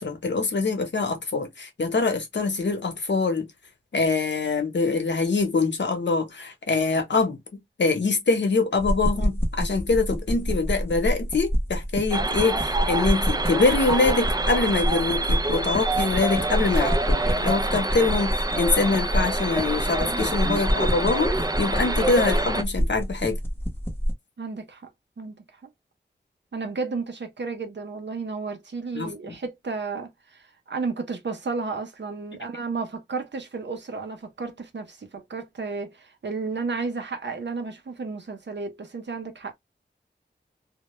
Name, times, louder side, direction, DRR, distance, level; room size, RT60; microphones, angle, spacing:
voice 1, 0.0-3.5 3.9-23.4 28.9-29.1, left 3 dB, 75° left, 0.8 m, -24 dB
sound 1, 8.8-24.1, equal, 10° left, 0.8 m, -27 dB
sound 2, 12.1-22.6, right 2 dB, 20° right, 0.4 m, -27 dB
voice 2, 24.4-24.9 25.2-25.4 26.5-39.5, right 4 dB, 75° right, 0.7 m, -32 dB
2.1 x 2.1 x 3.0 m
wide cardioid pair, 55°, 19 cm